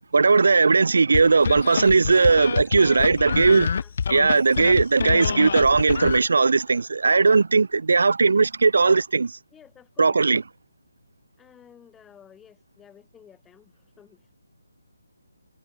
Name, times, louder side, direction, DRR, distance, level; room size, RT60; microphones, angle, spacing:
voice 1, 0.0-3.7 4.1-9.4 10.0-10.4, right 4 dB, 60° right, 0.8 m, -18 dB
sound 1, 1.1-6.2, left 6 dB, 40° left, 0.7 m, -27 dB
voice 2, 2.3-4.0 9.5-10.4 11.4-14.2, left 8 dB, 5° left, 4.8 m, -52 dB
hypercardioid pair, 175°, 0 cm